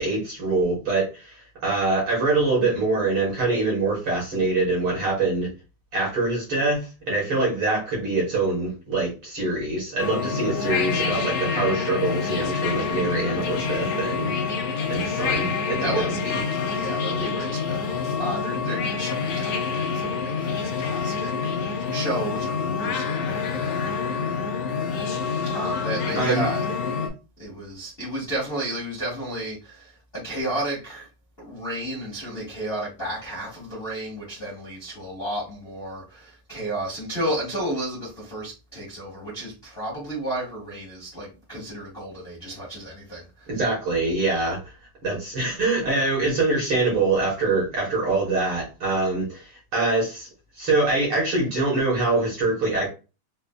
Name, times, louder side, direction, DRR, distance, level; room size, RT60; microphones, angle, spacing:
voice 1, 0.0-5.5 5.9-14.3 14.9-16.3 17.1-17.3 26.1-26.5 43.5-44.6 45.0-50.3 50.6-52.9, right 3 dB, 55° right, 1.7 m, -24 dB
sound 1, 10.0-27.1, left 5 dB, 75° left, 1.5 m, -27 dB
voice 2, 15.8-16.1 16.7-24.3 25.5-26.6 27.4-31.1 31.4-43.5, right 1 dB, 40° left, 0.8 m, -32 dB
5.2 x 2.4 x 2.3 m
omnidirectional pair, 3.6 m